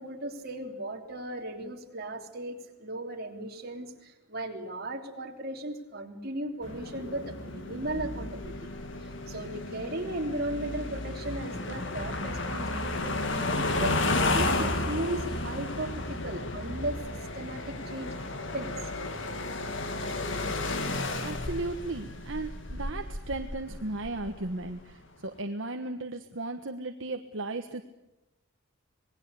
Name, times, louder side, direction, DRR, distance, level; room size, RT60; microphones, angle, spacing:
voice 1, 0.0-8.6 9.0-17.0 17.3-18.8, right 1 dB, 45° right, 2 dB, 3.4 m, -36 dB
sound 1, 6.6-24.8, left 2 dB, 60° left, 2.1 m, -33 dB
voice 2, 21.2-27.8, right 2 dB, 65° right, 5 dB, 1.3 m, -36 dB
26.0 x 20.0 x 8.4 m, 0.95 s
head